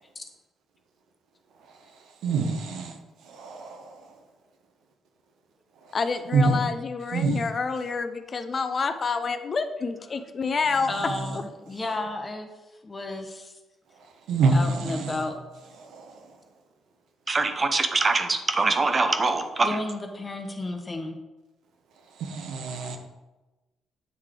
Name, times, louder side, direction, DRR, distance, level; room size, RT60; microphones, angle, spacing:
voice 1, 2.2-3.0 3.2-4.1 5.8-5.9 6.3-6.7 7.1-7.5 10.8-11.4 14.3-15.3 15.8-16.3 22.2-23.0, right 3 dB, 80° right, 0.8 m, -26 dB
voice 2, 5.9-10.9, left 4 dB, 40° left, 0.4 m, -28 dB
voice 3, 10.9-12.5 12.8-13.5 14.5-15.3 19.6-21.2, left 2 dB, 25° left, 0.9 m, -33 dB
voice 4, 17.3-19.7, right 3 dB, 30° right, 0.6 m, -23 dB
8.2 x 3.2 x 3.7 m
cardioid pair, 90°, 0 cm